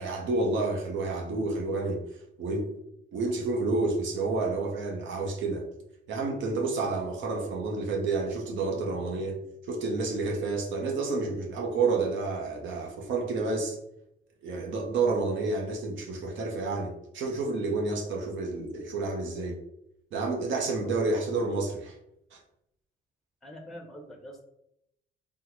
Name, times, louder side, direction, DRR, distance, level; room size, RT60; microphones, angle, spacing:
voice 1, 0.0-2.0 2.4-2.7 3.1-5.7 6.1-9.4 9.7-13.8 14.4-19.6 20.1-22.0 22.3-22.4, right 3 dB, 75° right, 1 dB, 0.8 m, -29 dB
voice 2, 23.4-24.4, equal, ahead, 2 dB, 0.6 m, -44 dB
3.5 x 2.2 x 2.9 m, 0.78 s
cardioid pair, 90°, 20 cm